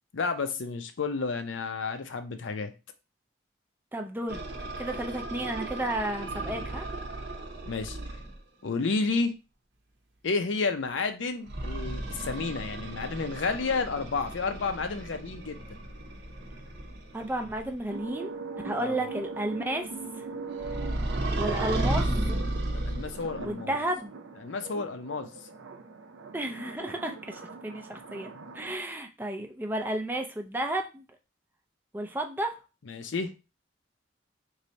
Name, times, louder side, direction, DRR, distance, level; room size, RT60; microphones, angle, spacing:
voice 1, 0.1-2.7 7.7-8.0 8.6-9.3 10.2-15.8 18.8-19.0 22.7-23.7 24.4-25.3 28.3-28.5 32.9-33.3, left 4 dB, 75° left, 0.5 m, -31 dB
voice 2, 3.9-4.4 4.8-6.9 17.1-18.3 18.6-19.9 21.4-22.4 23.4-24.1 26.3-31.0 31.9-32.6, right 1 dB, 10° right, 0.4 m, -32 dB
sound 1, 4.3-8.4 11.5-17.8 20.6-23.5, right 1 dB, 60° right, 0.8 m, -34 dB
sound 2, 17.9-28.7, right 4 dB, 85° right, 0.5 m, -42 dB
3.2 x 2.6 x 4.0 m
head